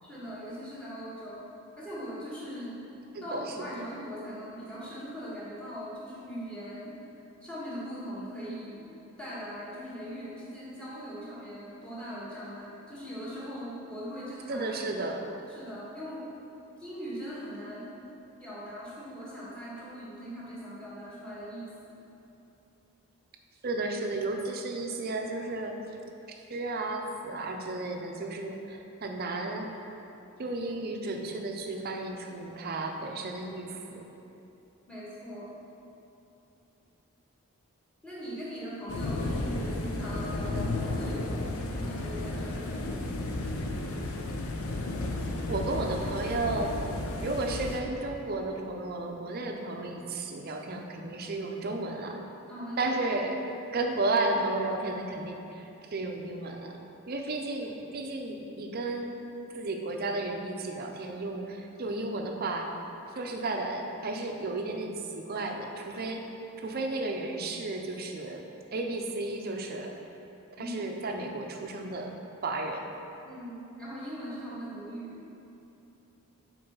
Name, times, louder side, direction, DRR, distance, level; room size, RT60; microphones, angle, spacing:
voice 1, 0.0-1.4 1.8-2.8 3.2-6.9 7.4-8.9 9.2-14.7 15.5-16.3 16.8-17.8 18.4-22.0 34.9-35.5 38.0-43.4 52.5-53.0 70.6-70.8 73.2-75.2, equal, 5° left, -8 dB, 1.5 m, -40 dB
voice 2, 3.1-3.9 14.5-15.2 23.6-25.8 26.3-29.7 30.4-34.1 45.5-46.8 47.2-52.2 52.8-53.4 53.7-56.7 57.1-59.2 59.5-62.8 63.1-66.2 66.6-68.4 68.7-69.9 70.6-72.1 72.4-72.9, right 2 dB, 45° right, 3 dB, 0.5 m, -33 dB
sound 1, 38.9-47.8, left 2 dB, 70° left, 0.6 m, -33 dB
5.5 x 4.6 x 5.5 m, 2.9 s
head